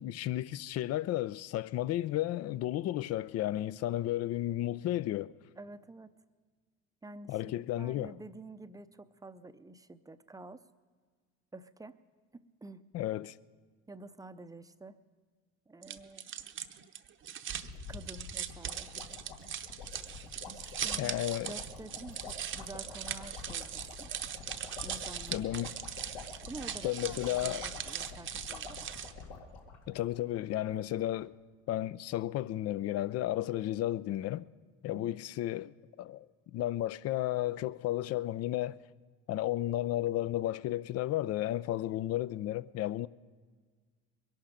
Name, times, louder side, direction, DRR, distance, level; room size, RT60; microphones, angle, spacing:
voice 1, 0.0-5.3 7.3-8.1 12.9-13.4 21.0-21.5 25.3-25.7 26.8-27.6 29.9-31.3 31.7-34.4 34.8-36.3 36.5-38.8 39.3-43.1, left 14 dB, 50° left, 0.5 m, -33 dB
voice 2, 5.6-6.1 7.0-7.4 7.8-10.6 11.5-12.0 12.3-12.8 13.9-15.0 15.7-16.3 17.9-19.2 20.4-24.1 24.8-25.6 26.5-29.0 34.9-35.2, right 2 dB, 10° right, 0.6 m, -49 dB
sound 1, 15.8-29.3, right 9 dB, 40° right, 0.8 m, -40 dB
sound 2, 17.6-30.4 30.7-30.8 31.0-31.2, left 4 dB, 80° left, 2.3 m, -47 dB
22.0 x 11.5 x 5.1 m
supercardioid pair, 80°, 32 cm